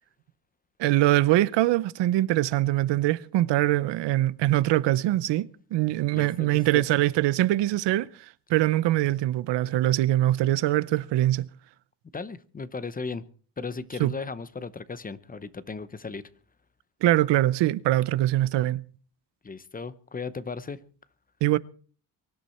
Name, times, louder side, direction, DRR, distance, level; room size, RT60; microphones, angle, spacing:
voice 1, 0.8-11.5 14.0-14.1 17.0-18.8 21.4-21.6, right 15 dB, 85° right, 0.8 m, -23 dB
voice 2, 6.1-6.8 12.1-13.2 13.6-16.3 19.4-20.8, left 4 dB, 20° left, 0.7 m, -36 dB
23.5 x 11.5 x 4.4 m
cardioid pair, 135°, 42 cm